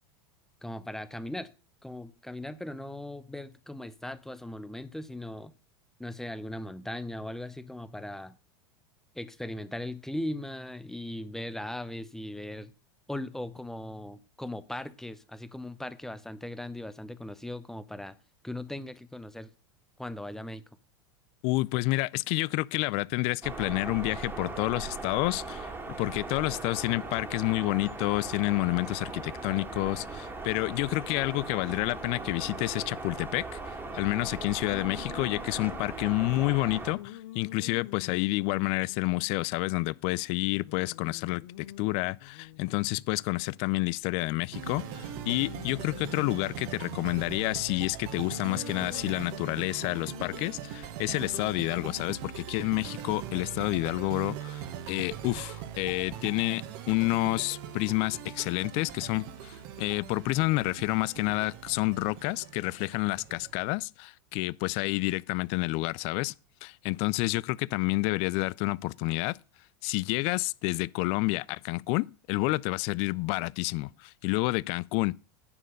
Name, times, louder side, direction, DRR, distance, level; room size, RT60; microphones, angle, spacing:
voice 1, 0.6-1.5 1.8-5.5 6.0-8.4 9.1-12.7 13.1-18.2 18.4-19.5 20.0-20.6, left 1 dB, 5° left, 0.7 m, -38 dB
voice 2, 21.4-33.6 33.9-54.6 54.9-66.3 66.6-69.4 69.8-75.1, left 22 dB, 50° left, 0.3 m, -29 dB
sound 1, 23.4-36.9, right 3 dB, 15° right, 2.0 m, -39 dB
sound 2, 34.7-36.4 36.9-39.8 40.1-40.2 40.4-43.9 44.4-47.2 48.2-50.5, left 13 dB, 70° left, 0.7 m, -47 dB
sound 3, 44.5-63.8, right 9 dB, 60° right, 1.3 m, -41 dB
9.8 x 4.4 x 6.3 m
hypercardioid pair, 105°, 13 cm